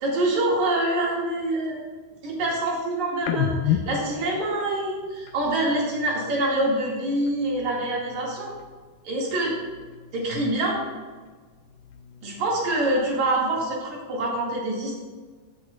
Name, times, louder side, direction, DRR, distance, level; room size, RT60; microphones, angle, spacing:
voice 1, 0.0-1.8 2.2-8.5 9.0-9.5 10.1-10.8 12.2-15.0, right 1 dB, 55° right, -4 dB, 3.2 m, -25 dB
sound 1, 3.2-6.8 7.1-8.9 9.2-11.1 11.4-13.3, left 9 dB, 80° left, 2.4 m, -34 dB
15.5 x 7.8 x 2.4 m, 1.5 s
omnidirectional pair, 4.3 m